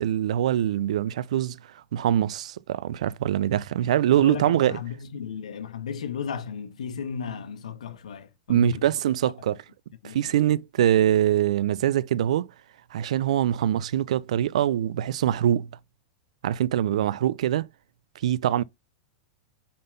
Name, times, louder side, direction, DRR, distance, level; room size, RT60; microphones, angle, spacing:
voice 1, 0.0-1.6 1.9-4.8 8.5-9.6 10.0-12.5 12.9-15.7 16.4-17.7 18.2-18.6, right 11 dB, 75° right, 0.4 m, -23 dB
voice 2, 4.2-8.9 10.0-10.2 10.5-10.6 18.5-18.6, left 7 dB, 85° left, 1.1 m, -35 dB
5.7 x 3.8 x 5.2 m
hypercardioid pair, 120°, 4 cm